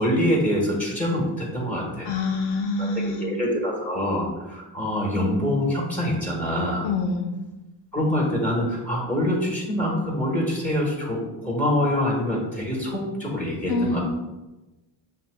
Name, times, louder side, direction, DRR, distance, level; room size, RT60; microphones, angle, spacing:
voice 1, 0.0-2.1 2.8-6.9 7.9-14.0, left 1 dB, 5° left, -3 dB, 1.2 m, -25 dB
voice 2, 2.0-3.3 6.8-7.3 13.7-14.0, left 3 dB, 85° left, 4 dB, 0.9 m, -26 dB
7.5 x 2.8 x 2.2 m, 1.0 s
cardioid pair, 105°, 48 cm